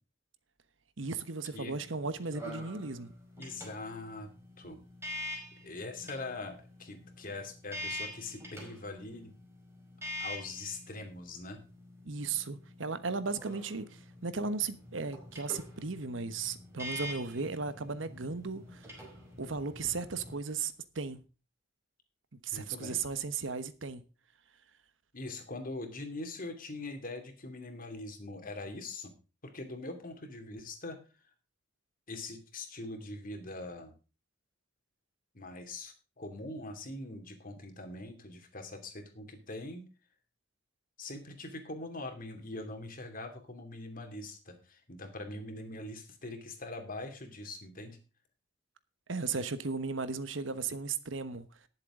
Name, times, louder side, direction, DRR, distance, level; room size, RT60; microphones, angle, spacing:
voice 1, 1.0-3.1 12.0-19.0 19.4-21.2 22.4-24.0 49.1-51.5, right 4 dB, 75° right, 1.1 m, -36 dB
sound 1, 1.7-20.3, left 1 dB, 15° right, 5.0 m, -46 dB
voice 2, 3.4-4.3 4.6-4.8 5.6-9.4 10.2-11.6 22.5-23.0 25.1-29.1 29.5-31.0 32.1-33.9 35.3-39.9 41.0-48.0, left 2 dB, 45° left, 2.7 m, -42 dB
19.0 x 7.6 x 3.8 m
head